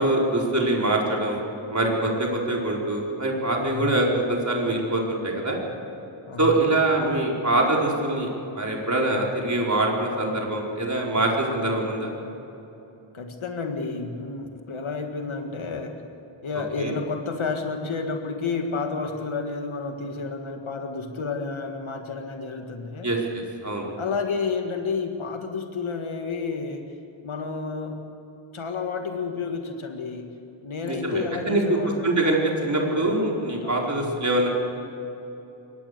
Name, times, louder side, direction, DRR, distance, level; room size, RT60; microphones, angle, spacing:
voice 1, 0.0-1.4 1.7-5.6 6.4-8.3 8.5-12.1 16.8-16.9 23.0-23.9 30.9-31.8 32.0-34.5, right 2 dB, 35° right, -1 dB, 4.7 m, -24 dB
voice 2, 3.6-4.0 6.3-6.6 13.1-16.0 16.4-23.1 24.0-26.8 27.2-28.0 28.5-30.3 30.6-32.1 32.8-33.1 33.6-34.2, left 4 dB, 75° left, 4 dB, 2.0 m, -31 dB
23.5 x 19.0 x 6.8 m, 3.0 s
wide cardioid pair, 100°, 48 cm